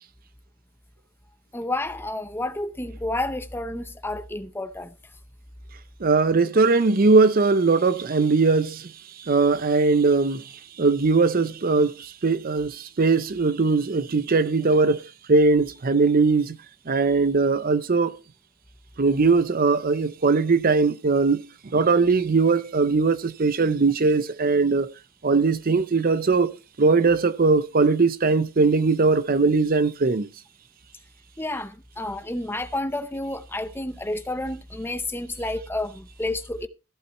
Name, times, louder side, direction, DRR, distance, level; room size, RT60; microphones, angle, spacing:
voice 1, 1.5-4.9 31.4-36.7, left 2 dB, 10° left, 0.6 m, -30 dB
voice 2, 6.0-8.9 9.3-10.4 10.8-15.0 15.3-16.6 16.9-18.1 19.0-21.5 21.7-24.9 25.2-30.3, right 4 dB, 40° right, 0.5 m, -20 dB
14.5 x 7.2 x 4.4 m
head